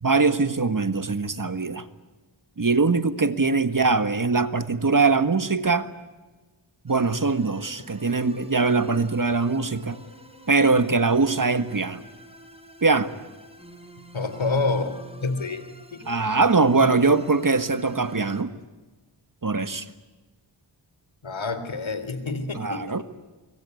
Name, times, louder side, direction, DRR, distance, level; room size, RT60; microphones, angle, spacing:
voice 1, 0.0-1.8 2.6-5.9 6.8-10.0 10.5-12.0 12.8-13.1 16.1-18.5 19.4-19.8 22.5-23.0, right 4 dB, 45° right, 11 dB, 1.7 m, -22 dB
sound 1, 6.9-18.4, equal, 10° right, 5.2 m, -48 dB
voice 2, 14.1-15.6 15.9-16.3 21.2-23.0, left 3 dB, 75° left, 11 dB, 3.4 m, -28 dB
24.5 x 23.0 x 9.4 m, 1.2 s
wide cardioid pair, 55°, 47 cm